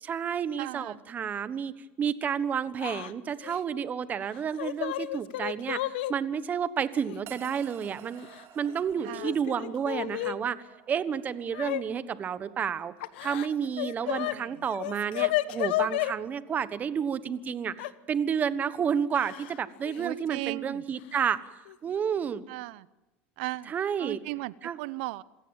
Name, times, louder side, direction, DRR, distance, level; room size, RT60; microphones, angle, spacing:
voice 1, 0.0-1.7 2.0-8.3 8.5-10.6 10.9-12.9 13.2-21.4 21.8-22.4 23.7-24.2 24.6-24.8, right 7 dB, 30° right, 15 dB, 1.2 m, -30 dB
voice 2, 0.6-1.0 9.0-9.4 14.0-14.6 20.0-20.8 22.5-22.9 23.4-23.7 24.0-25.2, right 21 dB, 75° right, 20 dB, 0.8 m, -37 dB
Yell / Crying sobbing, 2.8-3.1 3.4-3.6 4.3-6.1 7.1-7.2 8.2-8.7 9.1-10.4 11.5-11.8 13.0-14.3 14.7-16.1 17.8-17.9 19.1-19.6 19.8-20.0 21.1-21.2 21.7-22.0, left 16 dB, 85° left, 1.1 m, -32 dB
sound 1, 7.3-17.6, right 10 dB, 50° right, 2.7 m, -55 dB
27.0 x 16.0 x 8.9 m, 1.0 s
supercardioid pair, 130°, 6 cm